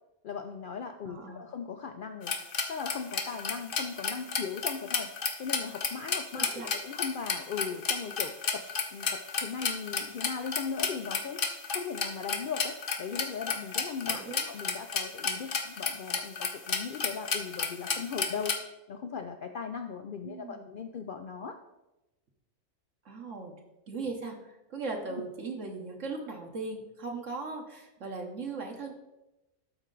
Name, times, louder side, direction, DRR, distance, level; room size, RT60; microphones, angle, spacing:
voice 1, 0.2-2.3 2.7-5.1 5.4-11.4 11.7-18.6 18.9-21.6, left 6 dB, 70° left, 6 dB, 0.5 m, -38 dB
voice 2, 1.0-1.5 6.3-6.7 14.1-14.5 20.2-20.7 23.0-23.6 23.9-28.9, right 3 dB, 65° right, 1 dB, 1.4 m, -38 dB
sound 1, 2.3-18.6, left 5 dB, 45° left, 0.9 m, -31 dB
12.5 x 4.3 x 3.8 m, 0.98 s
omnidirectional pair, 1.4 m